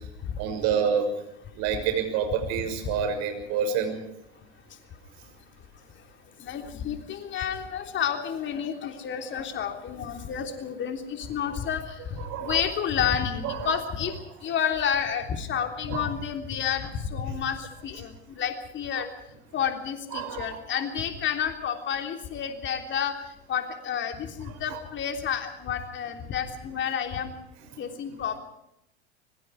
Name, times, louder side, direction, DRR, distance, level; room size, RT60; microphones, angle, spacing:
voice 1, 0.4-1.0 1.6-4.0 7.4-7.5 12.2-12.6 13.4-13.8 15.9-16.1 20.1-20.6 24.7-24.8, right 7 dB, 55° right, 7 dB, 6.2 m, -28 dB
voice 2, 6.4-14.1 14.4-19.1 19.5-27.3 27.8-28.4, left 8 dB, 35° left, 5 dB, 3.4 m, -30 dB
25.0 x 23.0 x 4.8 m, 0.82 s
hypercardioid pair, 85°, 33 cm